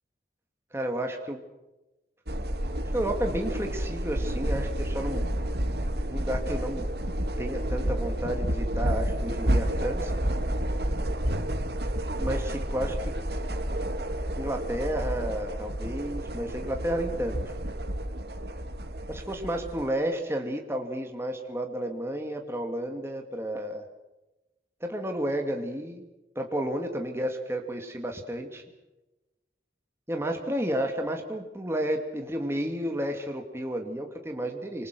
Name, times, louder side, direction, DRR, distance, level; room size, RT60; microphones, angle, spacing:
voice 1, 0.7-1.4 2.9-5.2 6.1-6.9 7.4-10.1 12.2-13.0 14.4-17.5 19.1-23.8 24.8-26.0 26.4-28.6 30.1-34.9, right 1 dB, 15° right, 3 dB, 2.3 m, -31 dB
sound 1, 2.3-19.9, right 1 dB, 65° right, 2.3 m, -30 dB
27.0 x 26.0 x 6.2 m, 1.0 s
head